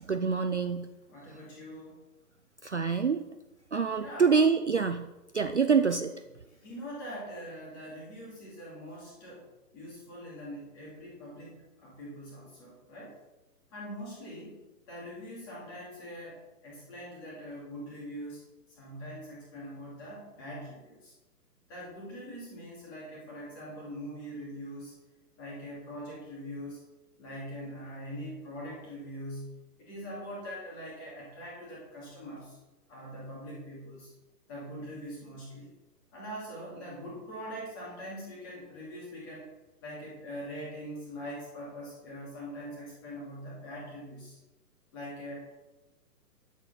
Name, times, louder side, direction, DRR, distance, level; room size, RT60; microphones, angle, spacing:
voice 1, 0.1-0.9 2.6-3.2 3.7-5.1 5.3-6.1, right 5 dB, 50° right, 8 dB, 0.5 m, -26 dB
voice 2, 1.1-2.0 4.0-4.4 6.5-9.5 9.7-13.2 13.7-14.6 14.9-21.1 21.7-24.9 25.4-26.8 27.2-32.6 32.9-34.1 34.5-35.7 36.1-39.5 39.8-44.4 44.9-45.5, equal, 15° left, -5 dB, 2.4 m, -43 dB
9.6 x 8.1 x 5.6 m, 1.0 s
hypercardioid pair, 180°, 48 cm